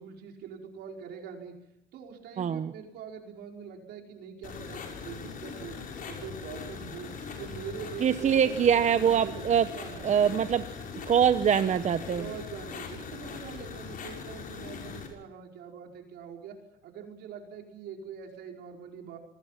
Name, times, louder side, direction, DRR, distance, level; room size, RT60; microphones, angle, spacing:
voice 1, 0.0-1.6 1.9-5.8 6.1-9.4 9.7-10.5 12.2-16.6 16.8-19.2, right 7 dB, 80° right, 2 dB, 5.0 m, -43 dB
voice 2, 2.4-2.7 8.0-9.7 10.0-10.6 11.1-12.2, right 8 dB, 45° right, 10 dB, 1.0 m, -23 dB
sound 1, 4.4-15.1, left 5 dB, 55° left, 6.4 m, -41 dB
27.0 x 20.5 x 5.9 m, 0.85 s
cardioid pair, 110°, 17 cm